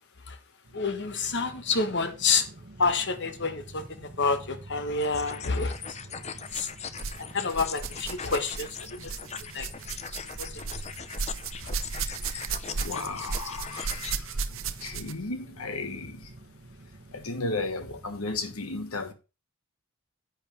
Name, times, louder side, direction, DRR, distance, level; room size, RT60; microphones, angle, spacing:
sound 1, 0.6-18.6, right 2 dB, 45° right, 1.1 m, -49 dB
voice 1, 0.7-2.5 2.8-6.7 7.3-9.1 9.5-9.7 10.4-10.7 11.6-11.7, left 4 dB, 55° left, 1.3 m, -29 dB
sound 2, 5.0-14.1, left 7 dB, 30° left, 0.6 m, -40 dB
sound 3, 5.5-5.7 6.5-7.2 7.5-15.3 16.2-16.3 17.1-17.2, right 5 dB, 65° right, 0.8 m, -35 dB
voice 2, 11.8-16.3 17.1-19.1, left 3 dB, 85° left, 1.5 m, -35 dB
10.5 x 8.5 x 3.4 m
head